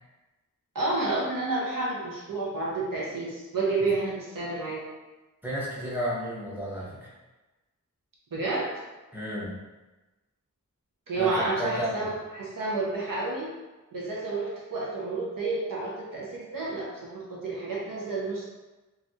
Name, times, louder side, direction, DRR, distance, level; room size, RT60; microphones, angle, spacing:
voice 1, 0.7-4.8 8.3-8.7 11.1-13.5 13.9-18.4, right 3 dB, 80° right, -4 dB, 0.8 m, -30 dB
voice 2, 5.4-7.1 9.1-9.6 11.2-12.0, equal, 5° right, -7 dB, 1.0 m, -32 dB
3.2 x 2.4 x 2.7 m, 1.1 s
wide cardioid pair, 80°, 33 cm